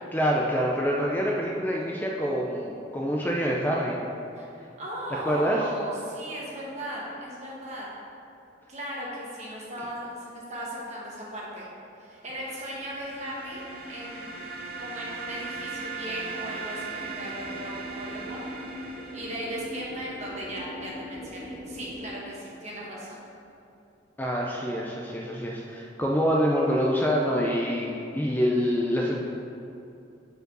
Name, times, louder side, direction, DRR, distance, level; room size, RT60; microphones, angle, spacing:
voice 1, 0.1-4.0 5.3-5.6 24.2-29.2, equal, 10° left, -2 dB, 0.5 m, -26 dB
voice 2, 4.3-7.9 8.7-11.7 12.0-14.3 14.8-18.4 19.1-23.2, equal, 40° right, -5 dB, 1.6 m, -37 dB
sound 1, 12.3-22.1, equal, 20° right, 0.8 m, -42 dB
sound 2, 12.4-20.1, right 4 dB, 55° right, 0.8 m, -39 dB
5.2 x 4.9 x 6.2 m, 2.7 s
head